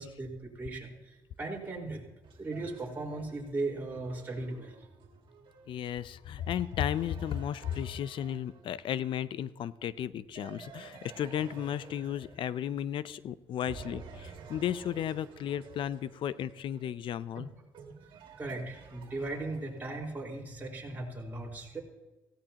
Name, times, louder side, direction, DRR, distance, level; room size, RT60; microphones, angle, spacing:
voice 1, 0.0-2.0 2.4-4.8 17.3-17.4 18.4-21.8, right 2 dB, 20° right, -3 dB, 4.7 m, -37 dB
sound 1, 1.6-9.0 10.4-13.2 13.6-20.1, right 5 dB, 65° right, 2.4 m, -52 dB
voice 2, 5.7-17.5, left 10 dB, 70° left, 17 dB, 0.6 m, -34 dB
16.5 x 16.5 x 3.0 m, 1.1 s
cardioid pair, 95°, 9 cm